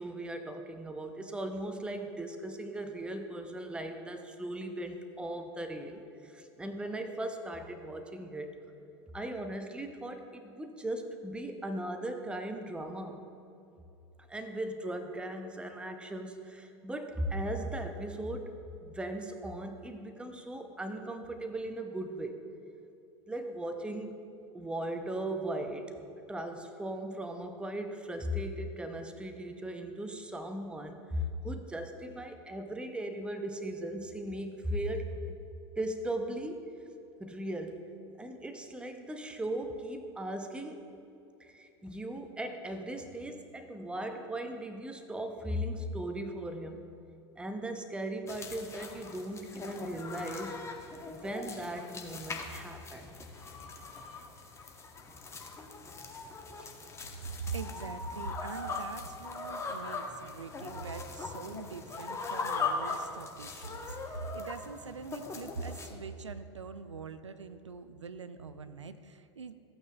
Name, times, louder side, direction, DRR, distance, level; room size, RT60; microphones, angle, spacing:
voice 1, 0.0-8.5 9.1-13.3 14.3-18.5 18.8-22.4 23.3-24.2 24.5-25.9 26.3-35.4 35.8-36.7 37.2-37.8 38.2-40.8 41.4-46.9 47.4-50.5 51.1-53.0 56.6-56.7, right 1 dB, 5° right, 6 dB, 0.7 m, -38 dB
sound 1, 48.3-65.9, left 4 dB, 20° left, 0.9 m, -40 dB
voice 2, 57.4-69.6, right 5 dB, 85° right, 11 dB, 0.4 m, -43 dB
14.0 x 8.7 x 2.3 m, 2.7 s
figure-of-eight pair, 85°, 15 cm